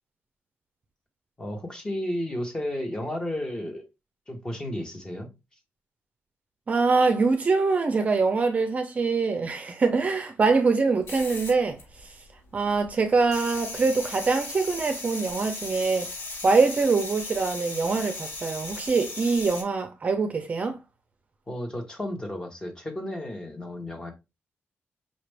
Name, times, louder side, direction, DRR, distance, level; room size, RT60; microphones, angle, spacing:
voice 1, 1.4-3.8 4.3-5.3 21.5-24.1, left 1 dB, 15° left, 0.9 m, -33 dB
voice 2, 6.7-12.1 12.5-16.1 16.4-20.8, right 4 dB, 30° right, 0.5 m, -24 dB
sound 1, 11.0-12.3 12.6-19.6, left 2 dB, 80° left, 2.6 m, -37 dB
5.1 x 2.5 x 3.2 m
wide cardioid pair, 170°, 5 cm